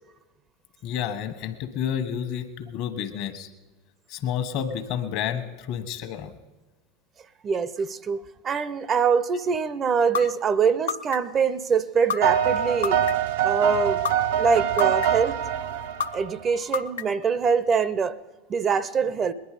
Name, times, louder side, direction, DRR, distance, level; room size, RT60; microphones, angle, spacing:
voice 1, 0.8-3.5 4.1-6.3 10.2-10.3, left 9 dB, 55° left, 1.3 m, -30 dB
voice 2, 7.4-13.0 13.4-14.0 14.4-15.4 16.1-18.1 18.5-19.3, right 6 dB, 35° right, 0.6 m, -24 dB
sound 1, 10.1-10.2 10.9-11.4 12.1-12.2 12.8-13.3 14.0-14.1 14.8-15.3 16.0-16.1 16.7-17.2, left 7 dB, 80° left, 0.5 m, -27 dB
sound 2, 12.2-16.4, right 9 dB, 75° right, 0.7 m, -24 dB
20.5 x 10.5 x 5.0 m
hypercardioid pair, 90°, 0 cm